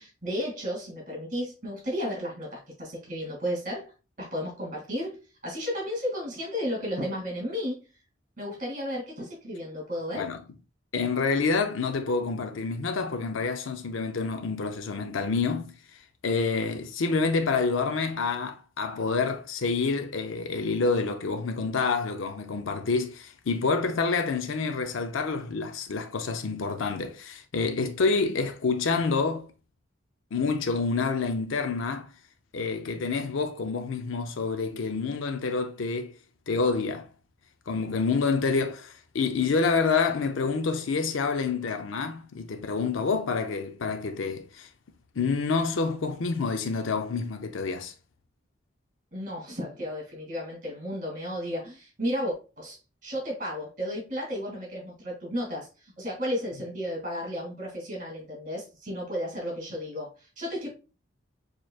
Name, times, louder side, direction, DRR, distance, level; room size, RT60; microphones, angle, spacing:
voice 1, 0.0-3.9 4.2-5.2 5.4-7.8 8.4-10.3 49.1-52.8 53.0-60.7, equal, 40° right, 2.3 m, -33 dB
voice 2, 10.9-15.8 16.2-29.5 30.3-32.1 32.5-36.2 36.5-37.1 37.7-44.7 45.2-47.9, left 4 dB, 85° left, 0.6 m, -28 dB
6.4 x 3.1 x 2.3 m
head